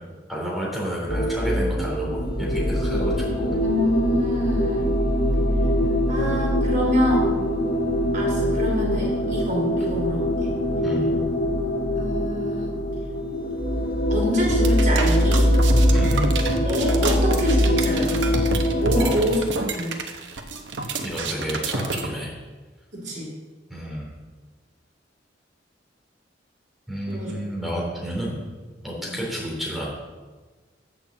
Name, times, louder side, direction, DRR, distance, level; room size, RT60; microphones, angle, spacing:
voice 1, 0.3-3.5 10.8-11.3 15.9-16.3 18.9-19.4 21.0-22.3 23.7-24.1 26.9-28.4 28.8-29.9, equal, ahead, -4 dB, 3.3 m, -30 dB
sound 1, 1.1-19.3, equal, 55° left, 1.6 m, -22 dB
voice 2, 3.5-5.0 6.1-7.3 8.1-10.5 12.0-12.7 14.1-15.5 16.6-18.2 18.7-20.0 22.9-23.3 27.1-27.4 29.0-29.2, equal, 45° right, -2 dB, 3.2 m, -26 dB
sound 2, 14.5-22.1, right 4 dB, 80° right, 1.0 m, -29 dB
7.5 x 6.6 x 7.7 m, 1.3 s
head